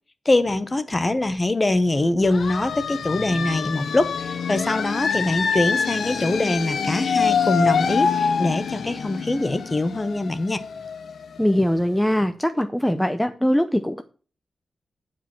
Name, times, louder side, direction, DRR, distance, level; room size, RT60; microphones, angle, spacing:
voice 1, 0.2-10.6, left 2 dB, 20° left, 13 dB, 0.9 m, -23 dB
sound 1, 2.2-11.7, left 6 dB, 75° left, 0.9 m, -25 dB
voice 2, 11.4-14.0, equal, 5° left, 8 dB, 0.6 m, -21 dB
9.0 x 5.2 x 7.4 m, 0.39 s
wide cardioid pair, 130°, 0 cm